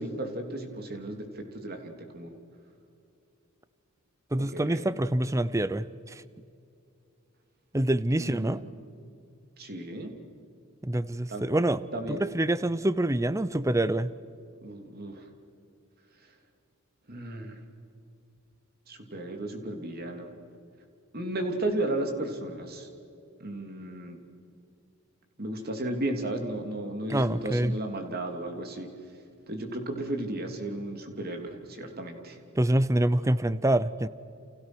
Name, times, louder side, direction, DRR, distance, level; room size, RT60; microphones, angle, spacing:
voice 1, 0.0-2.3 4.4-4.9 8.2-8.7 9.6-10.1 11.3-11.4 11.9-12.2 14.6-15.3 17.1-17.6 18.9-20.3 21.1-22.9 23.4-24.2 25.4-28.9 29.5-32.4, right 1 dB, 45° right, 4 dB, 3.1 m, -34 dB
voice 2, 4.3-6.2 7.7-8.6 10.8-11.8 12.1-14.1 27.1-27.8 32.6-34.1, right 1 dB, 15° right, 16 dB, 0.6 m, -26 dB
30.0 x 29.0 x 6.3 m, 2.5 s
head